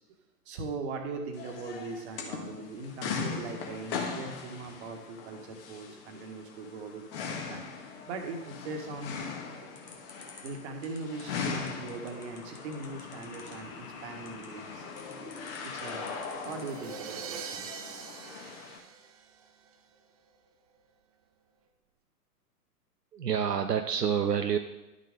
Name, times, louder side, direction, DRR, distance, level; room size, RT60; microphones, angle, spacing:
voice 1, 0.4-7.0 7.5-9.1 9.6-9.7 10.4-14.9 15.3-15.4 15.6-16.2 16.4-17.7, right 3 dB, 45° right, 3 dB, 1.6 m, -40 dB
sound 1, 1.3-18.8, left 5 dB, 35° left, 1.5 m, -40 dB
sound 2, 9.7-16.9, left 5 dB, 75° left, 2.0 m, -51 dB
sound 3, 16.5-19.7, right 6 dB, 25° right, 0.5 m, -43 dB
voice 2, 23.1-24.6, right 8 dB, 80° right, 6 dB, 0.7 m, -28 dB
11.5 x 6.5 x 3.7 m, 1.0 s
figure-of-eight pair, 110°, 48 cm